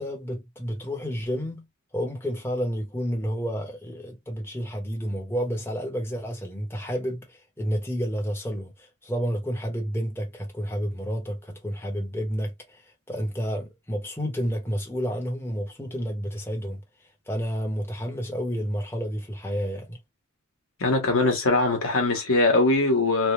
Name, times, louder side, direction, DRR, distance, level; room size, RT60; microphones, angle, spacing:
voice 1, 0.0-1.6 1.9-12.8 13.1-16.8 17.3-20.0, equal, 10° left, 1.0 m, -30 dB
voice 2, 20.8-23.3, left 2 dB, 60° left, 1.2 m, -21 dB
3.2 x 2.1 x 3.1 m
head